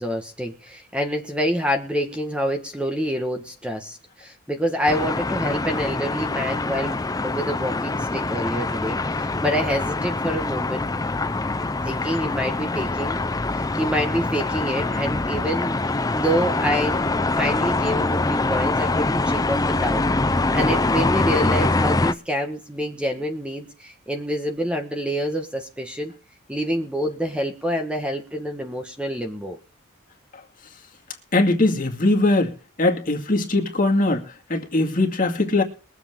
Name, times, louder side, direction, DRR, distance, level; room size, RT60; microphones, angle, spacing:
voice 1, 0.0-10.9 11.8-13.2 13.5-15.8 16.1-17.0 17.4-20.0 20.3-26.1 26.5-29.6, equal, 5° right, 4 dB, 1.5 m, -27 dB
sound 1, 4.9-22.1, left 2 dB, 15° left, 0.6 m, -24 dB
voice 2, 31.3-32.5 32.8-35.6, left 2 dB, 40° left, 3 dB, 2.2 m, -21 dB
22.5 x 8.0 x 3.8 m, 0.35 s
head